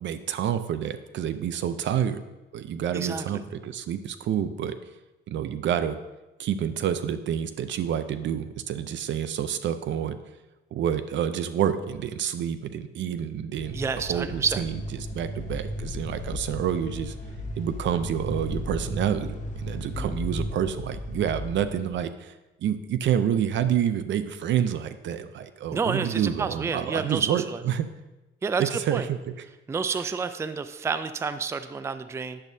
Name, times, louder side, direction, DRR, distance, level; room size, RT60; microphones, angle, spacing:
voice 1, 0.0-2.2 2.5-4.7 5.3-6.0 6.4-10.2 10.7-17.1 17.6-22.3 22.6-27.9 28.6-29.2 30.0-30.1, right 9 dB, 70° right, 12 dB, 0.5 m, -28 dB
voice 2, 2.9-3.4 13.7-14.6 19.9-20.2 25.7-27.6 28.4-29.1 29.7-32.4, right 5 dB, 15° right, 12 dB, 0.3 m, -29 dB
sound 1, 13.6-21.9, left 1 dB, 40° left, 1.1 m, -35 dB
8.8 x 7.1 x 2.7 m, 1.1 s
cardioid pair, 90°, 20 cm